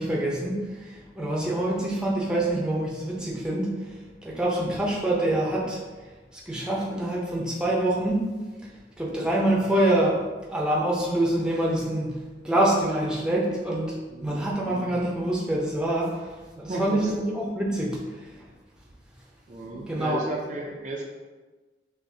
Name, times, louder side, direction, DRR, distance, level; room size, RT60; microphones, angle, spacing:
voice 1, 0.0-5.8 6.3-8.3 8.6-8.7 9.0-10.2 10.5-12.2 12.4-18.4 19.6-20.2, right 1 dB, 5° right, -4 dB, 0.7 m, -26 dB
voice 2, 14.1-14.5 16.7-17.1 19.5-21.1, right 1 dB, 45° right, -1 dB, 0.5 m, -34 dB
6.2 x 2.6 x 2.7 m, 1.3 s
head